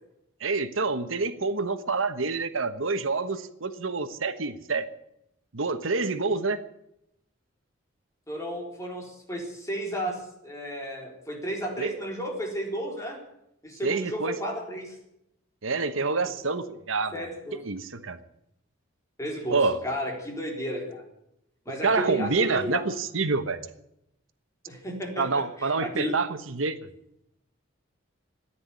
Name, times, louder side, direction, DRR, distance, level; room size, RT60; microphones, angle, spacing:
voice 1, 0.4-4.9 5.5-6.6 11.8-11.9 13.8-14.3 15.6-17.3 17.5-18.2 19.5-19.8 21.8-23.6 25.2-26.8, right 4 dB, 85° right, 10 dB, 1.2 m, -27 dB
voice 2, 8.3-13.2 13.6-15.0 17.1-17.6 19.2-19.6 19.8-21.0 21.7-22.8 24.7-26.1, equal, 15° left, 0 dB, 4.2 m, -33 dB
14.5 x 10.0 x 9.9 m, 0.79 s
head